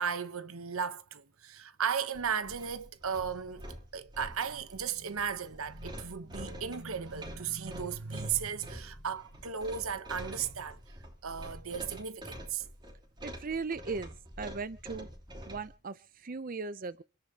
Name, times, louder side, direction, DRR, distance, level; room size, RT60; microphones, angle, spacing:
voice 1, 0.0-10.8 11.2-12.6, right 7 dB, 80° right, 1.0 m, -35 dB
sound 1, 2.1-15.7, equal, 20° right, 2.8 m, -47 dB
voice 2, 13.2-15.1 15.5-17.0, right 4 dB, 40° right, 0.5 m, -38 dB
27.5 x 10.5 x 2.9 m
head